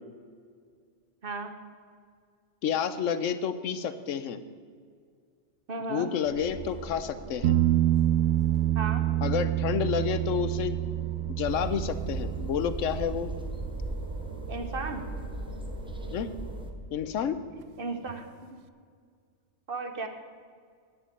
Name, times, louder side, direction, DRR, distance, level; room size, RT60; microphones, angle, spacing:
voice 1, 1.2-1.5 5.7-6.1 8.7-9.0 14.5-15.0 17.8-18.3 19.7-20.1, right 3 dB, 50° right, 6 dB, 1.2 m, -34 dB
voice 2, 2.6-4.4 5.9-7.6 9.2-10.8 11.3-13.3 16.1-16.3 16.9-17.4, left 8 dB, 75° left, 12 dB, 1.0 m, -30 dB
sound 1, 6.2-16.7, right 2 dB, 90° right, 2.3 m, -44 dB
sound 2, 7.4-15.0 18.1-18.2, right 13 dB, 65° right, 0.7 m, -28 dB
sound 3, 11.4-16.7, right 1 dB, 5° right, 0.8 m, -38 dB
9.7 x 7.3 x 8.5 m, 2.1 s
omnidirectional pair, 1.3 m